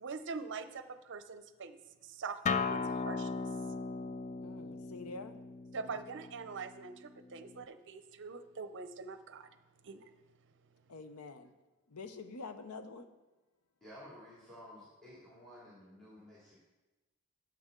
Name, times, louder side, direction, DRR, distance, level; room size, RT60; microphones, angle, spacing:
voice 1, 0.0-1.8 2.0-3.5 5.7-9.5 9.8-10.1, right 4 dB, 55° right, 10 dB, 0.6 m, -44 dB
Acoustic guitar, 2.5-7.6, left 4 dB, 35° left, 0.4 m, -38 dB
voice 2, 4.4-5.4 5.8-6.0 10.9-11.5 11.9-13.1, left 3 dB, 90° left, 9 dB, 0.7 m, -47 dB
voice 3, 13.8-16.5, left 1 dB, 5° left, -7 dB, 2.4 m, -53 dB
12.0 x 7.5 x 3.7 m, 1.1 s
head